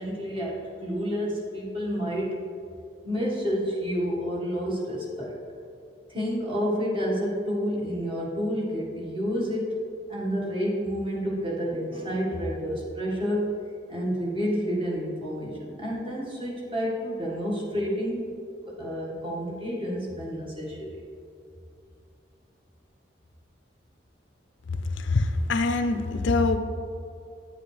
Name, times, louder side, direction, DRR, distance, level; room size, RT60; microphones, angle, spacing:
voice 1, 0.0-2.4 3.0-5.4 6.1-9.8 10.1-13.6 13.9-18.4 18.7-21.0, equal, 25° right, -5 dB, 1.6 m, -29 dB
voice 2, 25.0-26.6, left 3 dB, 80° left, 7 dB, 0.6 m, -24 dB
9.3 x 7.7 x 3.3 m, 2.5 s
head